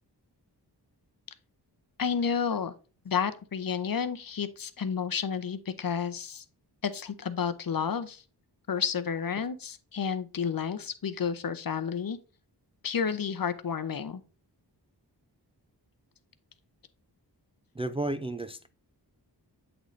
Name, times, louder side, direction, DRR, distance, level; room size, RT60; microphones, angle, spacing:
voice 1, 2.0-2.7 3.0-6.4 6.8-8.2 8.7-12.2 12.8-14.2, left 6 dB, 55° left, 0.6 m, -31 dB
voice 2, 17.8-18.7, right 2 dB, 15° right, 0.3 m, -32 dB
7.9 x 3.9 x 3.1 m
wide cardioid pair, 55°, 43 cm